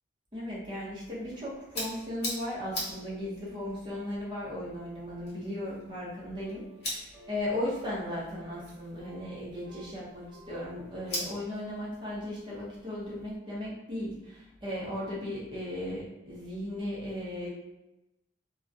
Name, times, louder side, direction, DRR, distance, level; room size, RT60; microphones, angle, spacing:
voice 1, 0.3-17.5, left 1 dB, 25° right, -7 dB, 0.7 m, -36 dB
sound 1, 1.1-13.4, left 1 dB, 50° left, 0.9 m, -43 dB
sound 2, 6.5-6.9 7.1-7.4 7.7-8.1 8.4-8.6 9.0-10.0 10.2-11.2, right 1 dB, 55° right, 0.7 m, -53 dB
2.3 x 2.1 x 2.6 m, 0.96 s
head